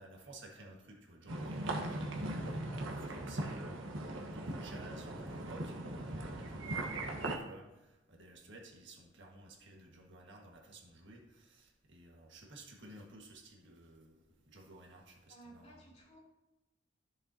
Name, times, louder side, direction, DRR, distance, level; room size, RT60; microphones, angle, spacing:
voice 1, 0.0-15.9, right 1 dB, 65° right, 0 dB, 1.7 m, -55 dB
sound 1, 1.3-7.4, right 1 dB, 80° right, 1.3 m, -39 dB
voice 2, 15.3-16.2, right 2 dB, 35° left, -5 dB, 2.7 m, -57 dB
14.0 x 6.7 x 2.8 m, 1.0 s
head